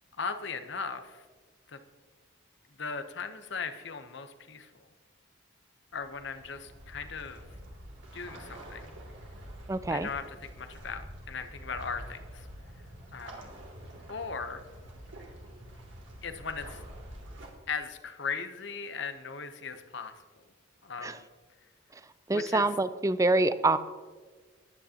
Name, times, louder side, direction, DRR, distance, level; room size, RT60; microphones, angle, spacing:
voice 1, 0.2-1.2 1.7-1.8 2.8-4.9 5.9-7.4 8.1-9.0 9.9-12.5 13.1-13.5 14.1-14.6 16.2-16.8 17.7-20.4 20.8-21.3 22.3-22.7, left 5 dB, 60° left, 8 dB, 0.9 m, -38 dB
sound 1, 5.9-17.5, right 1 dB, 65° right, 2.7 m, -47 dB
voice 2, 9.7-10.1 21.0-21.1 22.3-23.8, right 2 dB, 15° right, 13 dB, 0.4 m, -25 dB
20.5 x 9.3 x 2.9 m, 1.4 s
head